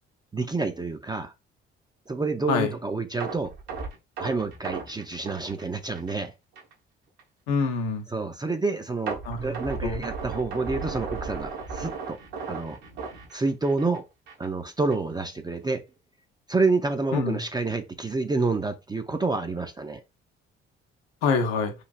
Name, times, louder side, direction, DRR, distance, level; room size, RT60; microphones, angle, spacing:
voice 1, 0.3-1.3 2.1-3.5 4.2-6.3 8.1-12.2 12.5-12.8 13.3-14.1 14.4-15.8 16.5-20.0, right 3 dB, 15° right, 0.4 m, -28 dB
sound 1, 3.2-6.2 6.6-6.7 7.2-7.3 9.1-14.0 14.3-14.5 14.9-15.0, right 4 dB, 75° right, 1.0 m, -35 dB
voice 2, 7.5-8.1 9.2-10.1 17.1-17.4 21.2-21.7, left 4 dB, 65° left, 0.7 m, -26 dB
3.2 x 2.5 x 2.4 m
figure-of-eight pair, 45°, 31 cm